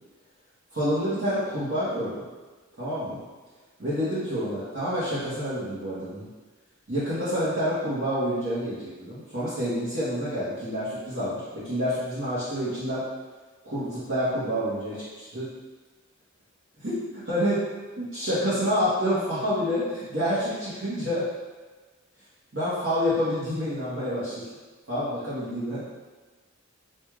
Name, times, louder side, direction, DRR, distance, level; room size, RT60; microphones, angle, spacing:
voice 1, 0.7-2.2 2.8-3.2 3.8-6.3 6.9-13.0 13.6-15.5 16.8-16.9 17.2-17.7 18.0-21.3 22.5-24.5 24.9-25.9, equal, 65° right, -14 dB, 1.1 m, -28 dB
4.6 x 2.6 x 2.4 m, 1.3 s
head